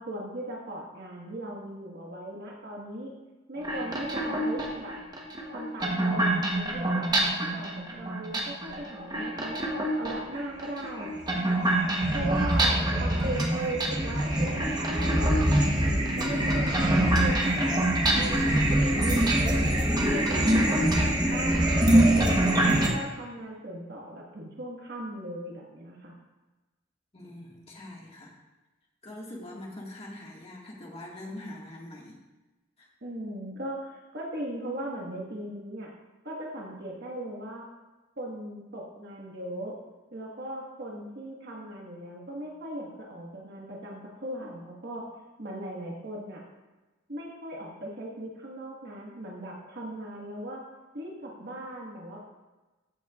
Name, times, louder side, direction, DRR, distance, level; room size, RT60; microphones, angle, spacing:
voice 1, 0.0-3.1 3.5-5.0 5.5-7.1 7.4-9.6 10.0-11.5 12.1-16.8 17.2-17.9 18.1-22.5 22.9-26.1 33.0-35.9 36.2-37.7 38.2-39.8 40.1-45.1 45.4-46.4 47.1-50.6 50.9-52.2, right 1 dB, 55° right, -3 dB, 1.6 m, -38 dB
sound 1, 3.6-22.9, right 1 dB, 20° right, 1.1 m, -25 dB
voice 2, 27.1-28.3 29.0-32.2, left 1 dB, 30° left, -2 dB, 1.8 m, -43 dB
14.5 x 7.8 x 2.5 m, 1.1 s
head